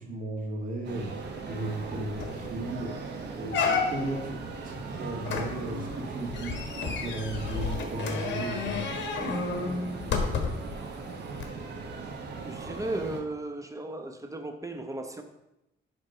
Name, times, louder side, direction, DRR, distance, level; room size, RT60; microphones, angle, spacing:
voice 1, 0.0-4.4 4.6-10.4, right 1 dB, 45° right, 1 dB, 2.0 m, -36 dB
sound 1, 0.8-13.2, right 4 dB, 60° right, 1.5 m, -39 dB
sound 2, 1.8-1.9 2.2-2.5 2.9-3.0 3.5-4.2 5.3-10.7 11.4-11.5, left 5 dB, 65° left, 1.3 m, -31 dB
voice 2, 12.4-15.2, right 2 dB, 15° right, 6 dB, 1.1 m, -35 dB
10.5 x 3.6 x 5.1 m, 0.90 s
cardioid pair, 90°, 20 cm